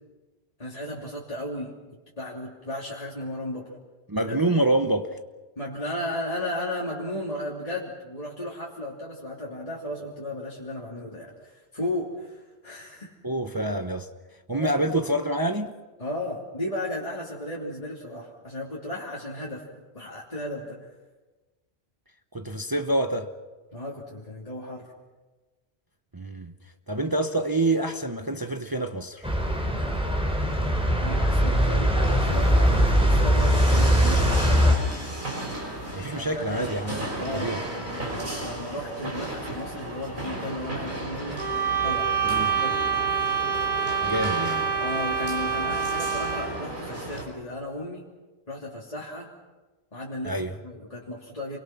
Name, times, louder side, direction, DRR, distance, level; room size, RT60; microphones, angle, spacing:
voice 1, 0.6-1.7 2.2-3.7 4.2-4.4 5.6-13.1 14.5-14.7 16.0-19.6 19.9-20.9 23.7-24.9 31.0-32.0 32.2-34.7 36.1-36.7 37.2-41.4 41.8-42.1 42.6-42.8 44.8-48.0 48.5-49.3 49.9-51.6, left 1 dB, 35° left, 3.2 m, -35 dB
voice 2, 4.1-5.2 13.2-14.1 14.5-15.7 22.3-23.3 26.1-26.5 26.9-29.3 32.7-32.9 35.9-37.6 42.3-42.6 44.0-44.7 50.2-50.6, right 1 dB, 20° right, 0.9 m, -27 dB
sound 1, 29.2-34.7, equal, 5° right, 3.4 m, -21 dB
sound 2, 31.9-47.2, right 1 dB, 50° right, 5.7 m, -35 dB
sound 3, 41.3-46.6, right 6 dB, 80° left, 3.5 m, -26 dB
29.0 x 23.5 x 6.0 m
omnidirectional pair, 1.1 m